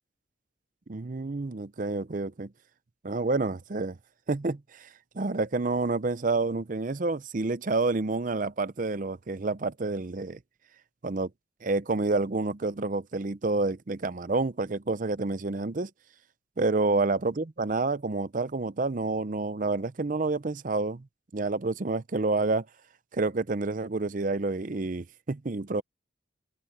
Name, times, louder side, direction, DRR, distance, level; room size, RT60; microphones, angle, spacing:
voice 1, 0.9-2.5 3.0-4.0 4.3-4.9 5.1-10.4 11.0-11.3 11.6-15.9 16.6-21.0 21.3-22.6 23.1-25.8, right 3 dB, 40° right, 0.6 m, -29 dB
head